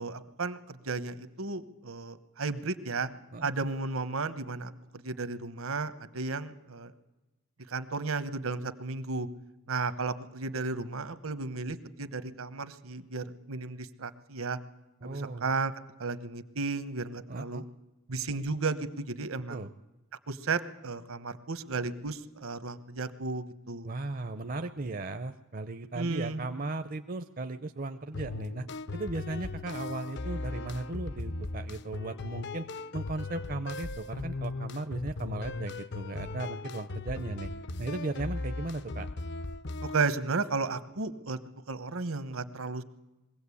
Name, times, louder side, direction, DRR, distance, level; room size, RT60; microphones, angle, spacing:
voice 1, 0.0-3.1 3.4-4.7 5.0-6.9 7.7-9.3 9.7-14.6 15.0-15.7 16.0-17.6 18.1-19.7 20.3-23.9 25.9-26.4 39.8-41.4 41.7-42.8, right 3 dB, 70° right, 12 dB, 1.1 m, -34 dB
voice 2, 15.0-15.5 17.3-17.6 19.5-19.7 23.8-28.7 28.9-32.7 32.9-37.5 37.8-39.1, right 2 dB, 40° right, 8 dB, 0.6 m, -36 dB
sound 1, 28.1-40.1, left 3 dB, 50° left, 0.6 m, -38 dB
22.0 x 16.5 x 8.5 m, 1.1 s
head